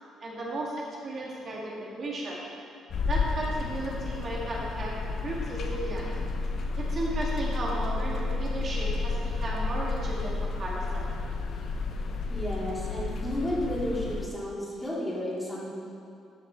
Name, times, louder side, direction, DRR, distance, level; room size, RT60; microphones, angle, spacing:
voice 1, 0.2-2.4 3.1-5.0 5.2-6.0 6.8-11.1, right 1 dB, 40° right, -4 dB, 1.7 m, -34 dB
sound 1, 2.9-14.3, left 3 dB, 55° left, 0.8 m, -31 dB
voice 2, 12.3-15.7, equal, 10° left, -6 dB, 2.6 m, -32 dB
13.5 x 6.6 x 4.5 m, 2.5 s
cardioid pair, 130°, 0 cm